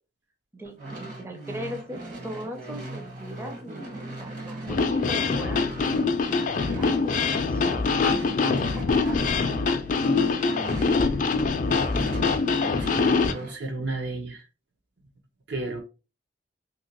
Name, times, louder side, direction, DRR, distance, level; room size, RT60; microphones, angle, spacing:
voice 1, 0.5-5.7 6.4-7.9 8.4-9.9, equal, 15° right, 0.5 m, -39 dB
sound 1, 0.6-11.3 11.6-13.6, right 2 dB, 45° right, 1.2 m, -39 dB
sound 2, 4.7-13.3, left 4 dB, 45° left, 0.4 m, -24 dB
voice 2, 12.8-14.4 15.5-15.8, right 2 dB, 75° right, 1.0 m, -33 dB
2.9 x 2.9 x 2.9 m
head